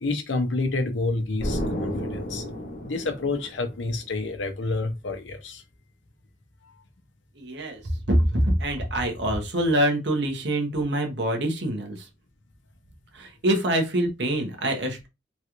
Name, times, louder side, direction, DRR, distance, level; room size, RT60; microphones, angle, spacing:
voice 1, 0.0-2.4 2.8-5.6, left 3 dB, 90° left, 0.7 m, -29 dB
Explosion, 1.4-4.1, equal, 50° left, 0.8 m, -32 dB
voice 2, 7.4-7.8 8.1-12.1 13.1-15.1, right 1 dB, 70° right, 1.0 m, -25 dB
3.1 x 2.4 x 2.9 m
head